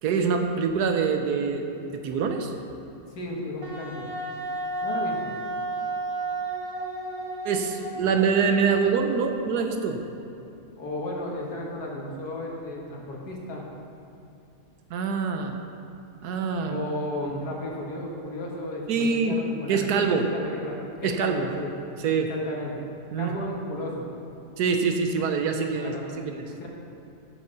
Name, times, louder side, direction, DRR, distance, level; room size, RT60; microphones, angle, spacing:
voice 1, 0.0-2.5 7.4-10.0 14.9-15.6 16.2-16.8 18.9-19.4 19.7-20.3 21.0-21.5 22.0-22.3 23.1-23.3 24.6-26.5, right 5 dB, 70° right, 5 dB, 1.3 m, -25 dB
voice 2, 3.1-4.1 4.8-5.3 10.8-13.7 16.7-21.7 22.3-22.9 23.2-24.1 25.8-26.1 26.4-26.7, left 1 dB, 70° left, -1 dB, 1.9 m, -34 dB
Wind instrument woodwind instrument, 3.6-9.1, right 2 dB, 25° right, 1.0 m, -32 dB
8.2 x 6.3 x 6.7 m, 2.8 s
omnidirectional pair, 1.8 m